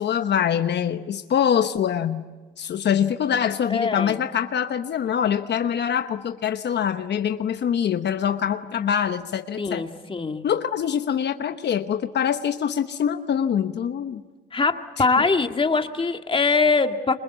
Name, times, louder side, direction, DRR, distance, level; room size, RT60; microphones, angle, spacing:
voice 1, 0.0-2.2 2.6-9.9 10.4-14.2, left 8 dB, 60° left, 9 dB, 1.1 m, -24 dB
voice 2, 3.7-4.2 9.6-10.4 14.5-17.2, left 4 dB, 25° left, 6 dB, 2.0 m, -22 dB
27.0 x 25.0 x 8.2 m, 1.3 s
cardioid pair, 90°, 20 cm